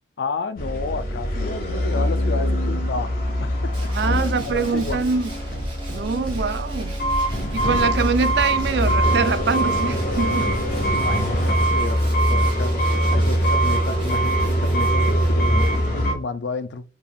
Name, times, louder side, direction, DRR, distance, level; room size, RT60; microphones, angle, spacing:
voice 1, 0.2-3.1 3.4-3.9 4.4-5.0 10.8-16.8, left 4 dB, 70° left, 0.4 m, -31 dB
sound 1, 0.6-16.1, equal, 55° left, 1.3 m, -22 dB
Tools, 3.7-16.2, right 3 dB, 30° right, 1.4 m, -44 dB
voice 2, 3.9-5.3 5.9-7.0 7.5-10.5, right 5 dB, 65° right, 0.4 m, -24 dB
sound 2, 4.0-10.8, right 1 dB, 5° left, 1.3 m, -36 dB
5.0 x 3.4 x 2.3 m
head